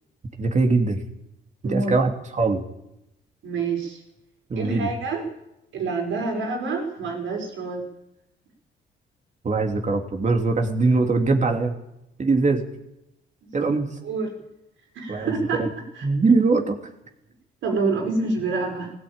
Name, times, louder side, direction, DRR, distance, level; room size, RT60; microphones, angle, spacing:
voice 1, 0.4-1.0 1.7-2.6 4.5-4.9 9.4-11.7 12.2-12.6 13.5-13.9 15.1-15.7 16.0-16.8, right 3 dB, 35° right, 3 dB, 3.0 m, -21 dB
voice 2, 3.4-4.0 4.6-5.2 5.7-7.9 13.6-13.7 14.0-14.3 14.9-15.6 15.9-16.1 17.6-18.9, right 3 dB, 75° right, 2 dB, 5.8 m, -27 dB
17.0 x 17.0 x 9.0 m, 0.86 s
cardioid pair, 90°, 20 cm